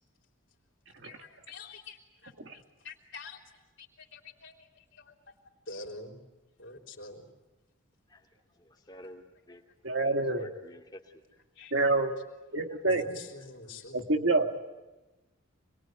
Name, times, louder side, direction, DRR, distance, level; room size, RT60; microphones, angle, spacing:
voice 1, 1.0-3.4 3.8-5.1 5.7-6.2 6.6-7.3 11.5-11.7 12.8-14.1, left 3 dB, 55° left, 0 dB, 3.8 m, -47 dB
voice 2, 8.6-9.6 10.0-11.2 12.7-12.8, left 1 dB, 20° left, 0 dB, 2.7 m, -51 dB
voice 3, 9.8-10.5 11.7-12.2 12.5-13.0 13.9-14.5, right 2 dB, 60° right, 4 dB, 1.9 m, -27 dB
26.0 x 22.0 x 9.1 m, 1.1 s
head